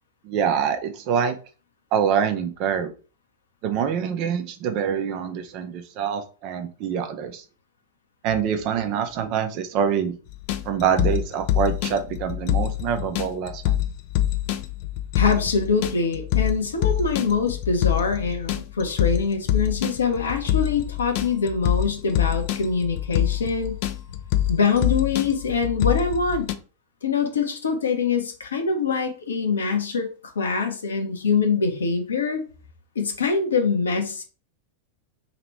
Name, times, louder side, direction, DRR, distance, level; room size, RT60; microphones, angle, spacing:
voice 1, 0.2-1.3 1.9-2.9 3.6-7.4 8.2-10.2 10.6-13.7, right 8 dB, 40° right, 7 dB, 0.6 m, -25 dB
sound 1, 10.3-26.5, left 12 dB, 45° left, 0.4 m, -25 dB
voice 2, 15.2-23.8 24.5-26.5 27.0-30.1 30.3-32.4 32.9-34.2, left 5 dB, 70° left, 5 dB, 0.8 m, -24 dB
3.0 x 2.9 x 4.5 m, 0.35 s
figure-of-eight pair, 90°, 0 cm